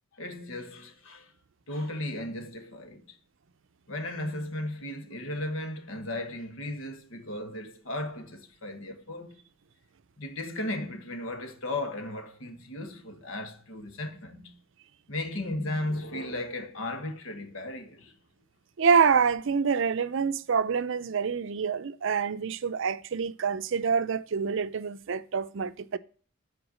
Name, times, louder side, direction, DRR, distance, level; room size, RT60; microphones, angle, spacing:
voice 1, 0.1-1.3 1.7-3.2 3.9-9.4 10.2-14.6 15.1-18.1, left 1 dB, 70° left, 1.5 m, -35 dB
voice 2, 18.8-26.0, right 6 dB, 65° right, 0.5 m, -26 dB
7.8 x 4.6 x 6.3 m
head